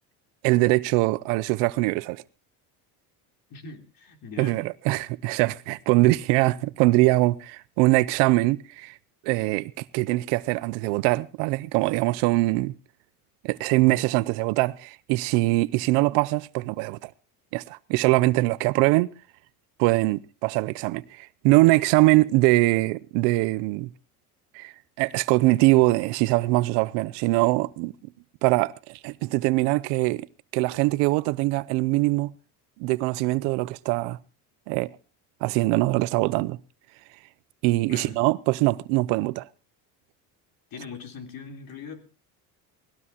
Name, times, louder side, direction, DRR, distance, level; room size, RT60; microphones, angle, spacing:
voice 1, 0.4-2.2 4.4-9.0 9.2-12.7 13.4-17.1 17.5-19.1 19.8-23.9 24.5-27.9 28.4-30.3 30.5-32.3 32.8-34.2 34.7-34.9 35.4-36.6 37.6-39.5, right 21 dB, 85° right, 0.7 m, -22 dB
voice 2, 3.5-4.6 37.9-38.2 40.7-42.0, left 5 dB, 55° left, 3.4 m, -40 dB
20.0 x 17.0 x 2.9 m
supercardioid pair, 95°, 41 cm